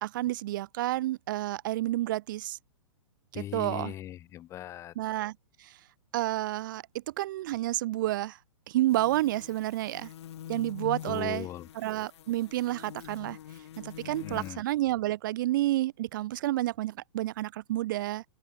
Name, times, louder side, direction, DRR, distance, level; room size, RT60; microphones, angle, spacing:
voice 1, 0.0-2.6 3.3-3.9 4.9-5.8 6.1-8.4 8.7-10.1 10.5-11.5 11.7-13.4 13.8-18.2, right 15 dB, 35° right, 1.4 m, -30 dB
voice 2, 3.3-4.9 11.1-11.7 14.0-14.6, left 12 dB, 15° left, 3.9 m, -39 dB
sound 1, 8.9-14.5, left 11 dB, 50° left, 4.8 m, -44 dB
open air
hypercardioid pair, 170°, 18 cm